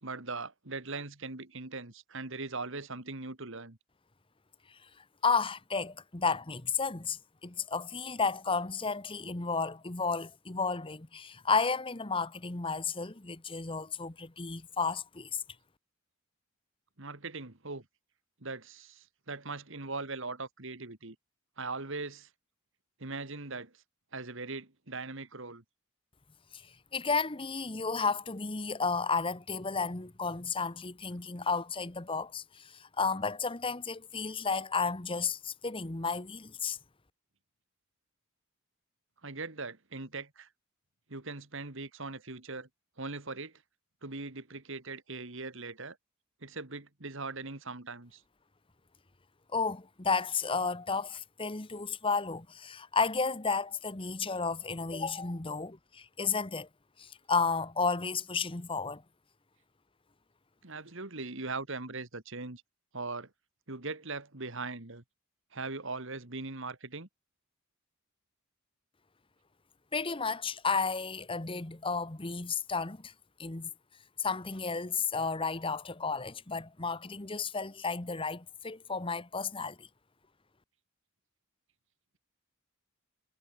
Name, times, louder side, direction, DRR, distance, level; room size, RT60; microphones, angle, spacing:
voice 1, 0.0-3.8 17.0-17.8 18.4-21.2 21.6-22.3 23.0-23.7 24.1-25.6 39.2-40.5 41.1-42.7 43.0-43.5 44.0-46.0 46.4-48.2 60.6-62.6 62.9-63.3 63.7-65.0 65.5-67.1, right 3 dB, 60° right, 2.2 m, -40 dB
voice 2, 5.2-15.4 26.5-26.6 26.9-36.8 49.5-56.7 57.0-59.0 69.9-73.1 73.4-73.7 74.2-79.9, left 4 dB, 25° left, 1.1 m, -32 dB
head